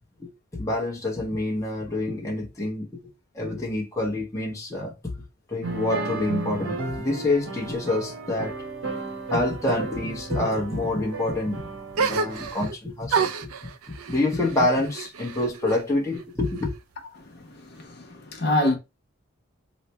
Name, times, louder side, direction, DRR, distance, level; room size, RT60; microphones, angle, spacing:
voice 1, 0.2-3.0 3.3-4.9 5.5-8.6 9.3-11.6 11.9-13.5 14.1-16.7, left 2 dB, 15° left, 0.8 m, -27 dB
sound 1, 5.6-12.5, right 3 dB, 65° right, 0.9 m, -34 dB
sound 2, 11.9-12.8 13.1-15.8 16.1-17.0, right 5 dB, 85° right, 0.4 m, -29 dB
voice 2, 17.1-18.8, left 1 dB, 50° left, 0.8 m, -26 dB
3.1 x 2.1 x 4.2 m
head